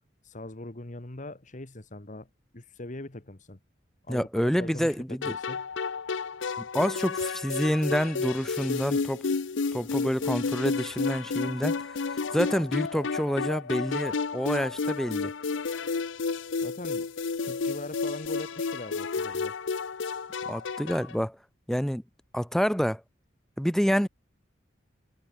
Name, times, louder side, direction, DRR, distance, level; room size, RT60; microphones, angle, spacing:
voice 1, 0.2-2.3 2.5-3.6 4.0-5.6 6.7-6.9 16.6-17.1 17.4-19.5, left 2 dB, 40° left, 1.6 m, -41 dB
voice 2, 4.1-5.3 6.6-9.2 9.7-15.3 20.5-21.4 21.7-22.0 22.3-23.0 23.6-24.1, equal, ahead, 2.4 m, -28 dB
sound 1, 5.2-21.1, left 4 dB, 85° left, 0.7 m, -31 dB
head